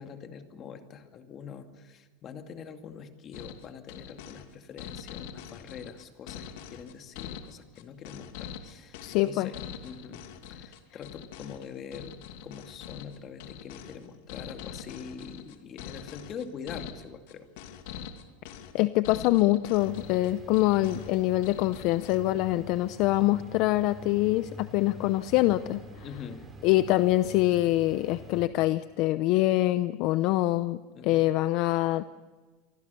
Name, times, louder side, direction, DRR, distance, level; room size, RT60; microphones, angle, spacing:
voice 1, 0.0-9.5 9.8-10.2 10.5-12.2 12.4-17.5 26.0-26.4 30.9-31.3, left 7 dB, 30° left, 7 dB, 2.3 m, -44 dB
sound 1, 3.3-22.2, left 9 dB, 65° left, 2.7 m, -43 dB
voice 2, 9.0-9.5 18.7-25.8 26.6-32.0, left 17 dB, 45° left, 14 dB, 0.7 m, -25 dB
sound 2, 19.8-28.5, right 1 dB, 15° right, 4.3 m, -46 dB
27.5 x 24.5 x 7.0 m, 1.3 s
supercardioid pair, 165°, 0 cm